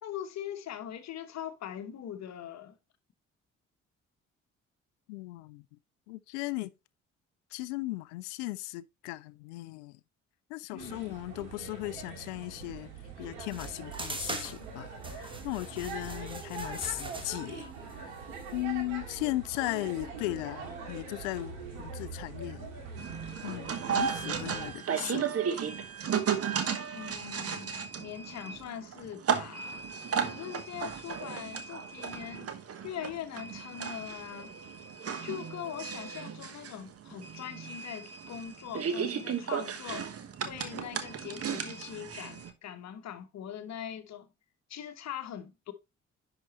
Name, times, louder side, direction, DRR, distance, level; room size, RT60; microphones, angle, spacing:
voice 1, 0.0-2.8 10.7-11.2 26.9-29.9 30.2-32.5 32.8-34.5 35.2-40.1 40.4-44.3 44.7-45.7, left 9 dB, 45° left, 1.1 m, -42 dB
voice 2, 5.1-5.8 6.1-6.7 7.5-10.0 10.5-12.9 13.2-17.7 17.9-18.1 18.5-22.7 23.4-25.3, left 19 dB, 65° left, 0.5 m, -37 dB
sound 1, 10.8-24.7, right 4 dB, 70° right, 1.9 m, -43 dB
sound 2, 13.5-18.6, right 2 dB, 15° right, 1.5 m, -42 dB
sound 3, 23.0-42.5, right 7 dB, 40° right, 1.1 m, -35 dB
10.5 x 3.9 x 3.0 m
figure-of-eight pair, 40°, 37 cm